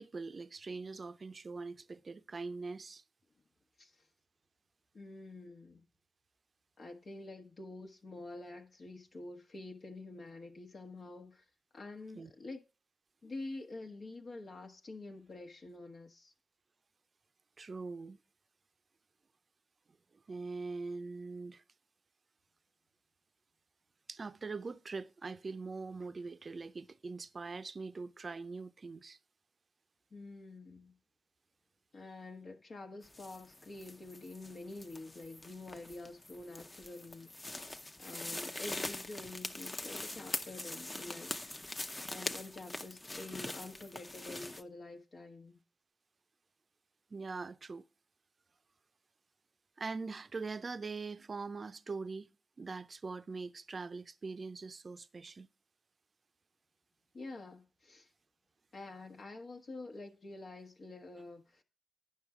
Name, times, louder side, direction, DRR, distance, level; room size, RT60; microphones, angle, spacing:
voice 1, 0.0-3.0 12.1-12.3 17.6-18.2 20.3-21.6 24.1-29.2 47.1-47.8 49.8-52.3 52.6-55.5, right 4 dB, 50° right, 0.5 m, -42 dB
voice 2, 4.9-5.8 6.8-11.4 11.7-12.6 13.2-16.3 30.1-31.0 31.9-37.7 38.0-41.3 42.1-45.6 57.1-58.1 58.7-61.6, left 2 dB, 60° left, 1.1 m, -48 dB
sound 1, 33.0-44.6, left 2 dB, 25° left, 0.8 m, -43 dB
9.4 x 5.8 x 4.8 m
supercardioid pair, 45°, 0 cm